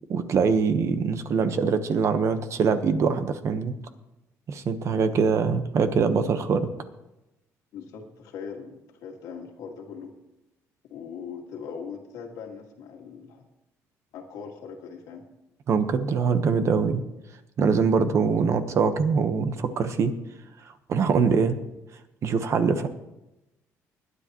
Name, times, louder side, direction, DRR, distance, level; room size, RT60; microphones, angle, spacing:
voice 1, 0.1-3.7 4.5-6.7 15.7-17.0 17.6-20.1 20.9-21.6 22.2-22.9, right 5 dB, 50° right, 9 dB, 1.1 m, -23 dB
voice 2, 4.9-5.3 7.7-10.1 10.8-13.4 14.1-15.3, left 6 dB, 80° left, 1 dB, 2.1 m, -40 dB
20.5 x 10.0 x 3.1 m, 0.95 s
cardioid pair, 100°, 6 cm